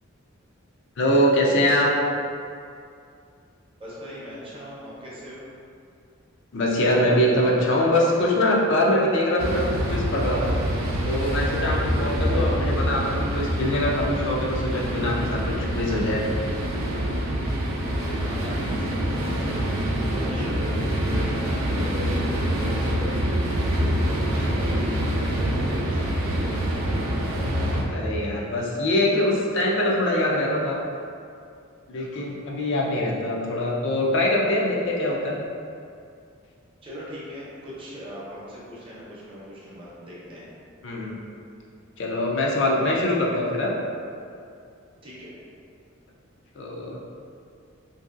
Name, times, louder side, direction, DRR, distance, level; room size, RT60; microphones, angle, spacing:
voice 1, 1.0-1.9 6.5-10.6 11.0-16.2 27.9-30.8 31.9-35.4 40.8-41.2 42.0-43.7 46.6-47.0, left 1 dB, 60° left, -3 dB, 0.4 m, -23 dB
voice 2, 3.8-5.5 17.9-27.1 36.8-40.4 45.0-45.3, equal, 25° right, -8 dB, 0.7 m, -39 dB
sound 1, 9.4-27.8, equal, 75° right, 0.4 m, -25 dB
2.9 x 2.6 x 2.4 m, 2.4 s
head